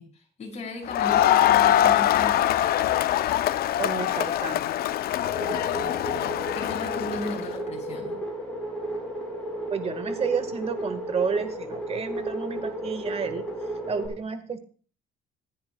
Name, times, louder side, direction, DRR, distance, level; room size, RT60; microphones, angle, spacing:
voice 1, 0.0-2.4 5.4-8.2, left 2 dB, 40° left, 0 dB, 5.9 m, -37 dB
Crowd, 0.9-7.5, left 12 dB, 65° left, 0.6 m, -23 dB
voice 2, 3.8-4.6 9.7-13.5 13.9-14.6, right 6 dB, 35° right, 10 dB, 1.5 m, -31 dB
sound 1, 5.2-14.1, right 1 dB, 5° left, 6.5 m, -33 dB
25.5 x 10.0 x 2.3 m, 0.42 s
cardioid pair, 110°, 17 cm